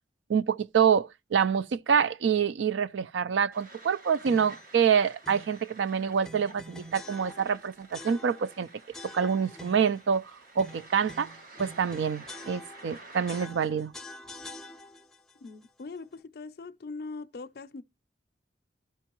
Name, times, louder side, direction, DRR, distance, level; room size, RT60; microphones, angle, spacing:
voice 1, 0.3-8.7 9.0-10.3 10.6-11.3 11.6-13.9, right 7 dB, 85° right, 0.4 m, -26 dB
sound 1, 3.5-13.5, right 2 dB, 50° right, 0.9 m, -51 dB
sound 2, 4.2-4.7 5.2-5.6 6.2-7.6 7.9-8.6 8.9-10.0 10.6-13.0 13.3-15.2, left 1 dB, 5° left, 0.4 m, -46 dB
voice 2, 15.4-17.8, left 3 dB, 55° left, 0.5 m, -41 dB
12.5 x 4.5 x 2.9 m
head